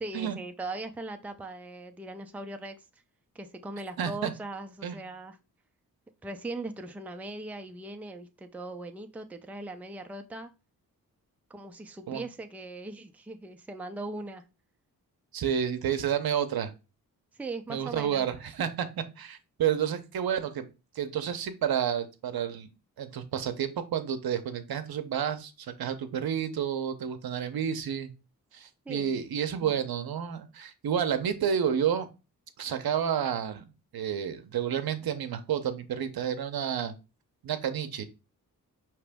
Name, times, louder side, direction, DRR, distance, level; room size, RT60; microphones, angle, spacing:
voice 1, 0.0-2.8 3.3-5.4 6.2-10.5 11.5-14.4 17.4-18.3 28.9-29.2, right 2 dB, 5° right, 0.4 m, -39 dB
voice 2, 4.0-4.3 4.8-5.0 12.1-12.2 15.3-16.7 17.7-18.9 19.2-20.7 21.0-22.7 23.0-28.1 28.5-32.1 32.6-33.7 33.9-36.9 37.4-38.0, right 8 dB, 70° right, 0.7 m, -30 dB
4.9 x 3.0 x 3.4 m
cardioid pair, 75°, 38 cm